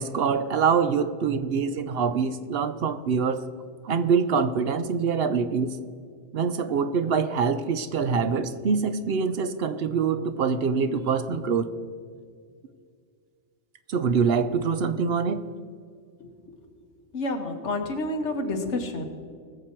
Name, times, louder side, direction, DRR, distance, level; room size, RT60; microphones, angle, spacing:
voice 1, 0.0-3.4 3.8-5.8 6.3-11.7 13.9-15.4, right 5 dB, 65° right, 11 dB, 0.8 m, -25 dB
voice 2, 17.1-19.1, left 2 dB, 75° left, 5 dB, 1.5 m, -29 dB
20.0 x 7.3 x 4.5 m, 2.1 s
omnidirectional pair, 1.2 m